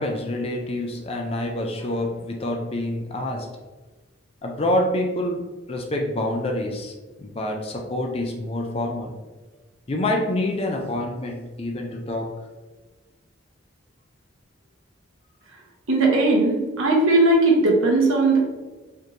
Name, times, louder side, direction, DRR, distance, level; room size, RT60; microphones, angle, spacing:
voice 1, 0.0-3.5 4.4-6.9 7.2-9.2 9.9-12.3, left 1 dB, 30° left, 2 dB, 0.4 m, -27 dB
voice 2, 15.9-18.4, right 2 dB, 75° right, -1 dB, 1.0 m, -18 dB
4.2 x 3.1 x 2.6 m, 1.3 s
head